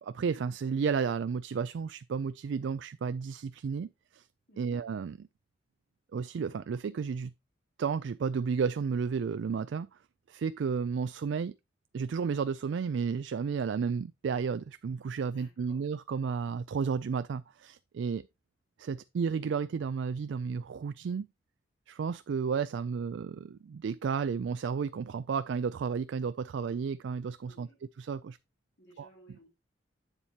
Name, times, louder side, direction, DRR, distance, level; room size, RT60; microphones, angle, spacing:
voice 1, 0.0-4.2 4.6-5.1 6.1-7.3 7.8-9.9 10.3-11.5 11.9-18.2 18.8-21.3 21.9-27.7 28.0-28.4 29.0-29.1, right 6 dB, 65° right, 0.3 m, -32 dB
voice 2, 4.5-4.8 15.1-15.8 27.4-27.8 28.8-29.5, equal, 65° left, 2.6 m, -57 dB
8.1 x 7.1 x 2.8 m
head